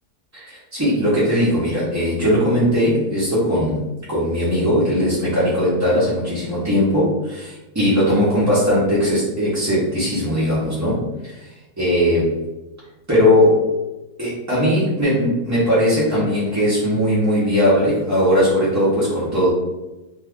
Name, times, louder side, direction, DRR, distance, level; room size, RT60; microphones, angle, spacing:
voice 1, 0.3-11.5 11.8-12.4 13.1-13.7 14.2-19.5, equal, 20° right, -10 dB, 0.5 m, -19 dB
2.7 x 2.4 x 3.5 m, 1.0 s
omnidirectional pair, 1.7 m